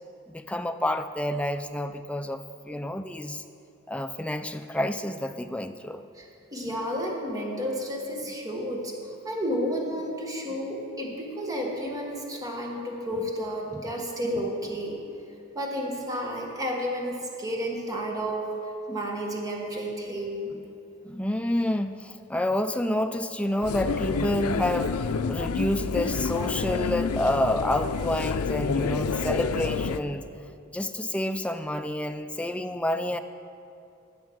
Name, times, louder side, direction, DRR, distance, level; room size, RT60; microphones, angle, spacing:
voice 1, 0.3-3.4 3.9-6.0 13.7-14.0 20.5-30.3 30.7-33.2, left 1 dB, 5° left, 8 dB, 0.4 m, -29 dB
voice 2, 6.2-8.9 9.2-15.0 15.5-18.5 18.9-20.5, equal, 15° right, 0 dB, 1.4 m, -31 dB
sound 1, 23.6-30.0, left 5 dB, 90° left, 0.5 m, -28 dB
12.5 x 7.5 x 6.1 m, 2.6 s
head